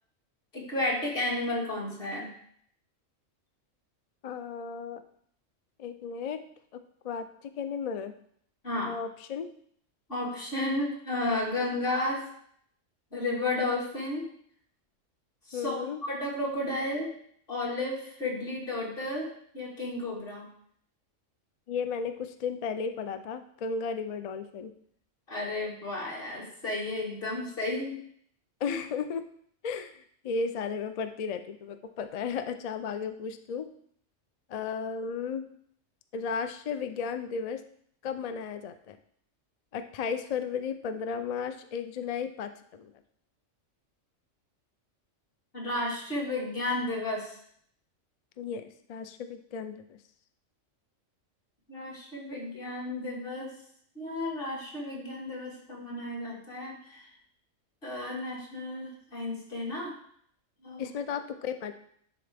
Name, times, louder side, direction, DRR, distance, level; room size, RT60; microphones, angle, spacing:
voice 1, 0.5-2.3 8.6-9.0 10.1-12.2 13.1-14.3 15.5-17.1 17.5-20.5 25.3-28.0 28.7-28.8 45.5-47.3 51.7-53.5 54.0-57.1 57.8-59.9 60.6-60.9, left 2 dB, 45° left, -3 dB, 2.1 m, -33 dB
voice 2, 4.2-5.0 5.8-6.4 6.7-8.1 8.9-9.5 15.5-16.0 21.7-24.7 28.6-29.2 29.6-33.7 34.5-35.5 36.1-37.6 38.0-39.0 39.7-42.9 48.4-50.0 60.8-61.7, left 6 dB, 75° left, 9 dB, 0.3 m, -34 dB
11.0 x 3.9 x 3.4 m, 0.65 s
omnidirectional pair, 1.3 m